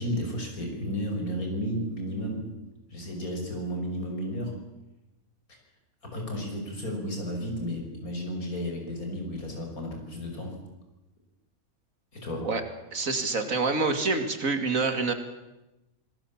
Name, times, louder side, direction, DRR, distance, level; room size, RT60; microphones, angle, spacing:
voice 1, 0.0-2.6 2.9-4.6 6.0-10.6 12.1-12.5, equal, 85° left, 2 dB, 6.1 m, -33 dB
voice 2, 12.9-15.1, right 3 dB, 70° right, 7 dB, 2.7 m, -26 dB
26.0 x 19.0 x 7.3 m, 0.98 s
omnidirectional pair, 1.5 m